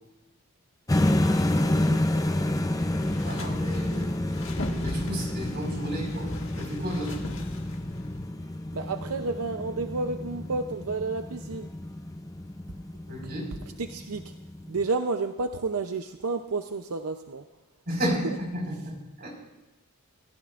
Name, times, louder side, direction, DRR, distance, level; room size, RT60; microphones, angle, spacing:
sound 1, 0.9-14.9, left 1 dB, 15° left, 0.5 m, -29 dB
voice 1, 1.5-2.0 2.3-2.4 8.7-11.7 13.8-14.2 14.7-17.4, right 3 dB, 85° right, 7 dB, 0.6 m, -31 dB
sound 2, 2.8-8.3, left 1 dB, 60° left, 1.7 m, -38 dB
voice 2, 3.2-4.5 4.8-7.2 13.1-13.6 17.9-19.3, equal, 45° right, -1 dB, 4.8 m, -33 dB
27.5 x 15.0 x 2.5 m, 1.0 s
head